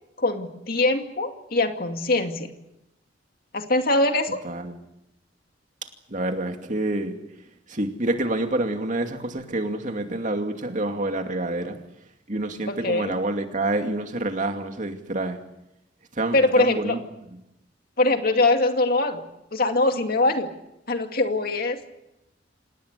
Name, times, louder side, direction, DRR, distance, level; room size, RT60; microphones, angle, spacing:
voice 1, 0.2-2.5 3.5-4.4 12.7-13.1 16.3-17.0 18.0-19.2 19.5-20.5 20.9-21.8, left 2 dB, 55° left, 5 dB, 2.3 m, -22 dB
voice 2, 4.4-4.8 6.1-7.2 7.7-11.8 12.3-15.4 16.1-17.0, right 2 dB, 45° right, 5 dB, 2.5 m, -27 dB
27.0 x 18.5 x 8.3 m, 0.87 s
head